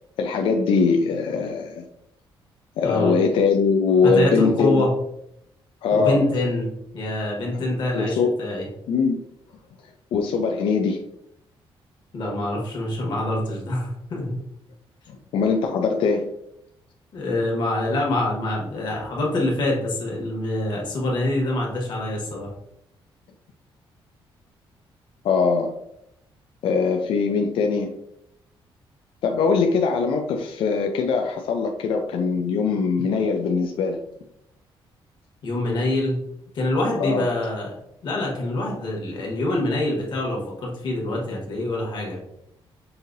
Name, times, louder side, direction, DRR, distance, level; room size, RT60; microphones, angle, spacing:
voice 1, 0.2-1.8 2.8-4.9 5.8-6.2 7.9-8.3 8.9-9.2 10.1-11.0 15.1-16.3 25.2-25.8 26.6-28.0 29.2-34.0 37.0-37.3, left 5 dB, 70° left, 3 dB, 0.4 m, -21 dB
voice 2, 2.8-3.1 4.0-4.9 5.9-6.7 6.9-8.7 12.1-14.4 17.1-22.5 35.4-36.2 36.5-37.7 38.0-42.2, left 1 dB, 50° left, -1 dB, 1.2 m, -25 dB
5.5 x 2.7 x 2.5 m, 0.78 s
cardioid pair, 180°, 9 cm